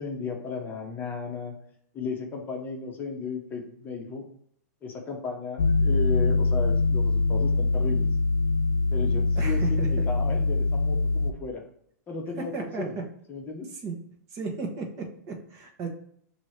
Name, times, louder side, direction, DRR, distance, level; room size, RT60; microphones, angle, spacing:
voice 1, 0.0-1.5 1.9-4.3 4.8-8.1 8.9-11.6 12.1-12.9 13.3-13.7, left 4 dB, 20° left, 1 dB, 0.9 m, -35 dB
sound 1, 5.6-11.3, left 3 dB, 80° left, 0.5 m, -23 dB
voice 2, 9.3-10.1 12.4-13.0 13.7-14.0 14.3-15.9, right 4 dB, 35° right, 0 dB, 1.1 m, -34 dB
5.9 x 2.8 x 3.2 m, 0.68 s
hypercardioid pair, 135°, 10 cm